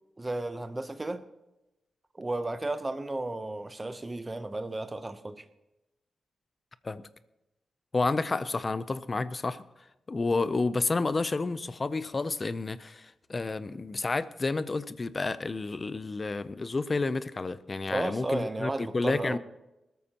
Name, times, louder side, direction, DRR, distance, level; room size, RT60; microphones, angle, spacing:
voice 1, 0.2-1.2 2.1-5.4 17.9-19.4, right 2 dB, 15° right, 0.7 m, -33 dB
voice 2, 7.9-9.6 10.1-19.4, left 3 dB, 25° left, 0.5 m, -30 dB
20.5 x 13.5 x 2.9 m
wide cardioid pair, 165°, 0 cm